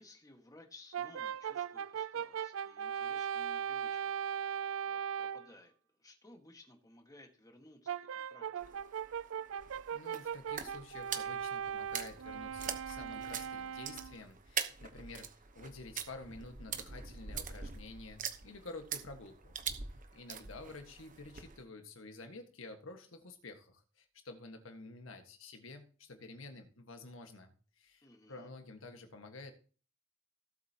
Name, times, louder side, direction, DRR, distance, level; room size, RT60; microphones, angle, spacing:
voice 1, 0.0-4.2 4.9-8.8 28.0-28.5, left 2 dB, 20° left, 4 dB, 1.7 m, -59 dB
Brass instrument, 0.9-5.5 7.9-14.2, right 8 dB, 85° right, 0.4 m, -39 dB
sound 1, 8.6-21.6, right 7 dB, 40° right, 1.0 m, -44 dB
voice 2, 9.9-15.3 15.5-19.5 20.1-29.5, left 3 dB, 85° left, 6 dB, 1.6 m, -50 dB
17.0 x 8.0 x 2.9 m, 0.39 s
head